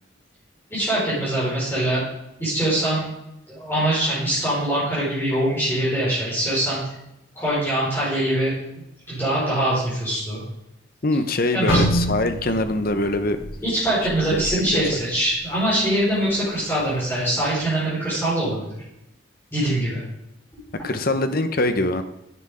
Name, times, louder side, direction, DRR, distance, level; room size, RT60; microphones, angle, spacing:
voice 1, 0.7-2.0 2.4-3.2 3.5-6.8 7.3-8.6 9.1-10.4 11.5-11.8 13.6-18.7 19.5-20.0, right 1 dB, 10° left, -10 dB, 4.7 m, -23 dB
voice 2, 11.0-13.4 14.3-14.8 20.8-22.0, left 2 dB, 45° left, 9 dB, 0.8 m, -23 dB
sound 1, 11.7-15.7 16.1-16.3 17.0-17.3, equal, 80° left, 3.1 m, -27 dB
9.9 x 8.0 x 4.9 m, 0.85 s
head